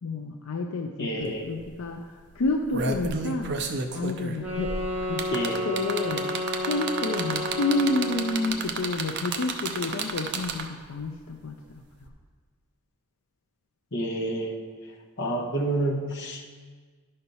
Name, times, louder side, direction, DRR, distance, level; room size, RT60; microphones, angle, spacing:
voice 1, 0.0-3.6 3.9-4.7 5.0-6.4 6.7-11.8, left 2 dB, 80° left, 3 dB, 0.5 m, -30 dB
voice 2, 1.0-1.5 5.3-5.6 13.9-14.6 15.2-16.5, right 1 dB, 55° left, 0 dB, 1.1 m, -29 dB
sound 1, 1.2-1.3 1.6-1.9 2.4-10.9 12.0-12.1, right 4 dB, 55° right, 0.6 m, -31 dB
sound 2, 4.4-8.6, left 1 dB, 5° right, 1.6 m, -31 dB
11.0 x 4.4 x 5.4 m, 1.5 s
head